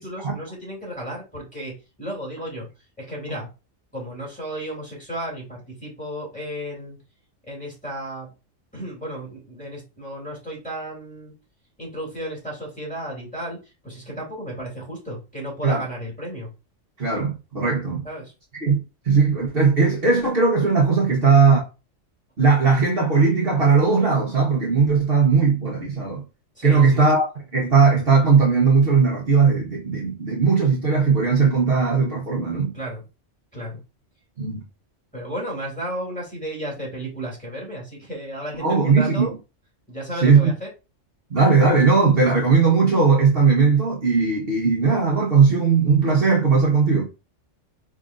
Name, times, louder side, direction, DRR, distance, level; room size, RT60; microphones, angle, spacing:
voice 1, 0.0-2.7 3.0-3.5 3.9-7.0 7.5-8.3 8.7-11.3 11.8-13.6 13.8-16.5 18.0-18.3 26.6-27.0 32.7-33.0 33.5-33.8 35.1-39.3 39.9-40.7, right 1 dB, 5° left, 2.3 m, -33 dB
voice 2, 17.0-18.1 18.6-18.8 19.0-21.6 22.4-26.2 26.6-32.7 34.4-34.6 38.6-39.3 40.2-40.4 41.3-47.0, right 5 dB, 50° right, 1.3 m, -18 dB
4.7 x 3.5 x 2.5 m
omnidirectional pair, 1.3 m